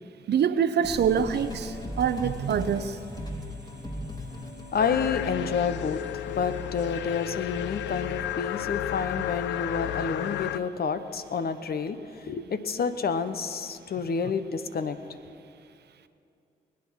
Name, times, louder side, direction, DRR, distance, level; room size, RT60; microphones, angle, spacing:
voice 1, 0.3-3.0 14.2-14.3, right 7 dB, 60° right, 12 dB, 0.8 m, -25 dB
sound 1, 0.8-6.1, left 1 dB, 20° left, 2.7 m, -39 dB
voice 2, 4.7-15.0, left 5 dB, 55° left, 12 dB, 0.9 m, -29 dB
sound 2, 4.8-10.6, left 12 dB, 70° left, 0.4 m, -32 dB
21.5 x 8.9 x 5.7 m, 2.5 s
hypercardioid pair, 40°, 19 cm